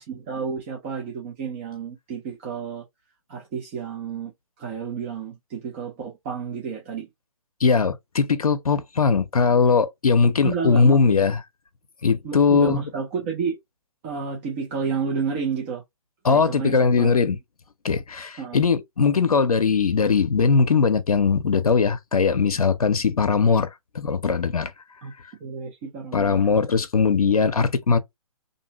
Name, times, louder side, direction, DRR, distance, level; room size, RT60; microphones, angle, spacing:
voice 1, 0.0-2.8 3.3-4.3 4.6-7.1 10.4-11.0 12.2-13.6 14.0-15.8 16.2-17.3 18.4-18.6 25.0-25.1 25.4-26.4, right 6 dB, 20° right, 0.5 m, -31 dB
voice 2, 7.6-11.4 12.0-12.8 16.2-17.4 17.8-24.7 26.1-28.0, left 5 dB, 85° left, 0.5 m, -20 dB
2.7 x 2.5 x 2.8 m
figure-of-eight pair, 145°, 18 cm